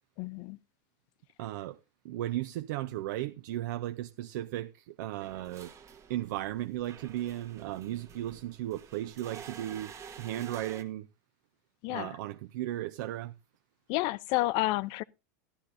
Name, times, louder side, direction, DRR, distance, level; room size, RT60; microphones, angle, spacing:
voice 1, 0.2-0.6 11.8-12.2 13.9-15.0, left 19 dB, 50° left, 0.5 m, -30 dB
voice 2, 1.4-1.8 2.0-5.7 6.1-11.1 11.9-13.3, right 14 dB, 70° right, 0.6 m, -36 dB
sound 1, 5.2-10.8, right 7 dB, 30° right, 1.3 m, -50 dB
14.5 x 11.5 x 2.6 m
supercardioid pair, 130°, 10 cm